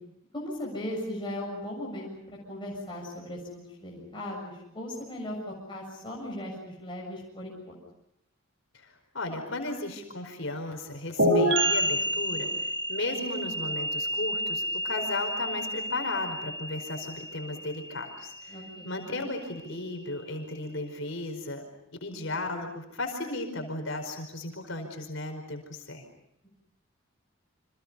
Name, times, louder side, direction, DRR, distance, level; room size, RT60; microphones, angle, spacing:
voice 1, 0.3-7.8 18.5-18.9, left 1 dB, 25° left, -3 dB, 7.2 m, -38 dB
voice 2, 8.7-18.6 18.8-21.6 22.0-26.0, left 2 dB, 65° left, 4 dB, 5.0 m, -35 dB
sound 1, 11.2-18.7, equal, 60° right, 7.8 m, -29 dB
30.0 x 26.5 x 5.6 m, 0.82 s
head